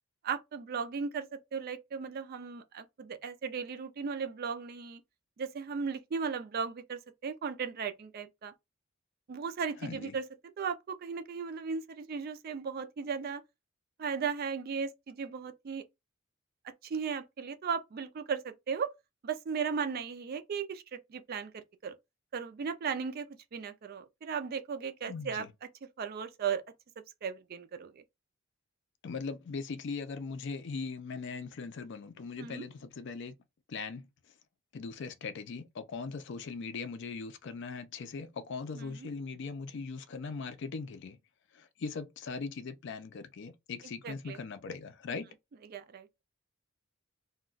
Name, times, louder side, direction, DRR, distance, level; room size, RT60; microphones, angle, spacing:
voice 1, 0.2-5.0 5.4-8.5 9.3-10.2 10.6-13.4 14.0-15.8 16.8-18.9 19.2-22.0 22.3-23.3 23.5-25.5 26.0-26.6 27.2-28.0 32.4-32.7 38.7-39.1 44.0-44.4 45.1-45.2 45.7-46.1, right 6 dB, 45° right, 0.4 m, -36 dB
voice 2, 9.8-10.1 25.1-25.5 29.0-33.4 33.7-34.1 34.7-41.2 41.5-45.3, left 4 dB, 60° left, 0.4 m, -40 dB
2.3 x 2.1 x 3.7 m
head